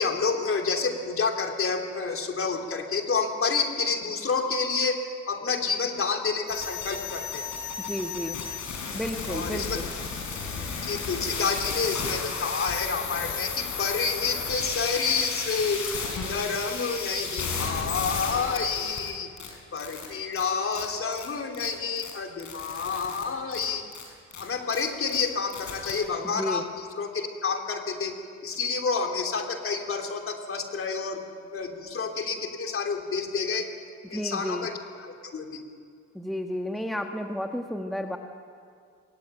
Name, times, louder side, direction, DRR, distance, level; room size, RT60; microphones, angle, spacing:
voice 1, 0.0-5.0 5.3-7.5 9.3-9.8 10.8-15.9 16.2-19.3 19.7-23.8 24.4-31.2 31.5-33.7 34.1-35.7, left 5 dB, 45° left, 4 dB, 3.4 m, -29 dB
sound 1, 6.5-19.1 19.4-19.5 19.8-20.1 20.3-20.5 20.7-20.9 21.1-21.3 21.5-21.7 22.0-22.1 22.4-23.2 23.5-23.6 23.9-24.0 24.3-24.4 24.7-24.8 25.1-25.2 25.5-25.9, left 5 dB, 65° left, 5.9 m, -33 dB
voice 2, 7.8-8.4 8.9-9.9 26.2-26.6 34.1-34.7 36.1-38.2, equal, ahead, 4 dB, 1.4 m, -32 dB
20.5 x 19.5 x 9.2 m, 2.2 s
cardioid pair, 90°, 30 cm